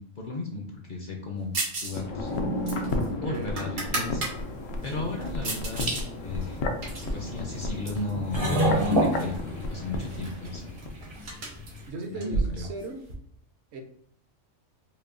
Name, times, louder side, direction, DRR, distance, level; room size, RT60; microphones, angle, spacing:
voice 1, 0.0-1.6 1.8-2.3 3.2-4.2 4.8-5.9 6.2-6.6 7.1-10.7 12.1-12.6, left 2 dB, 50° left, 1 dB, 0.7 m, -34 dB
sound 1, 1.5-2.0 2.3-4.3 4.8-6.0 6.4-8.1 8.8-9.4 9.6-9.7 10.0-13.1, right 3 dB, 80° right, 1.4 m, -34 dB
sound 2, 1.9-11.0 11.2-11.3, left 2 dB, 80° left, 1.0 m, -33 dB
voice 2, 3.0-3.6 11.9-13.0 13.7-13.8, right 3 dB, 65° right, 4 dB, 0.9 m, -37 dB
sound 3, 4.0-11.9, right 1 dB, 30° right, 0.5 m, -31 dB
5.4 x 2.2 x 2.5 m, 0.63 s
omnidirectional pair, 1.3 m